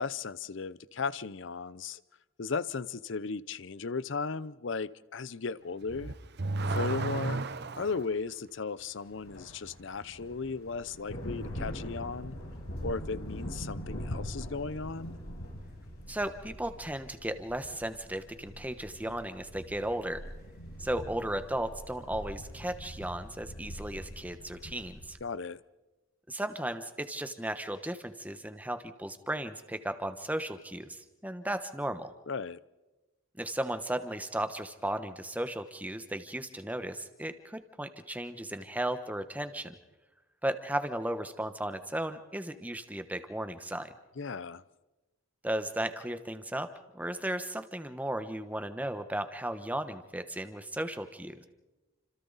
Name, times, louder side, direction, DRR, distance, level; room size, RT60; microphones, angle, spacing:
voice 1, 0.0-2.0 2.4-6.2 6.7-7.4 7.7-12.4 12.8-15.2 25.2-25.6 32.3-32.6 44.2-44.6, left 4 dB, 60° left, 18 dB, 0.6 m, -36 dB
Car / Accelerating revving vroom, 5.8-8.1, right 3 dB, 50° right, 0.7 m, -33 dB
sound 1, 9.0-25.1, equal, 85° left, 6.8 m, -43 dB
voice 2, 16.1-20.2 20.8-25.2 26.3-32.1 33.4-39.7 40.4-43.9 45.4-46.7 46.9-51.5, right 1 dB, 5° right, 9 dB, 1.1 m, -35 dB
30.0 x 26.5 x 4.1 m, 1.1 s
head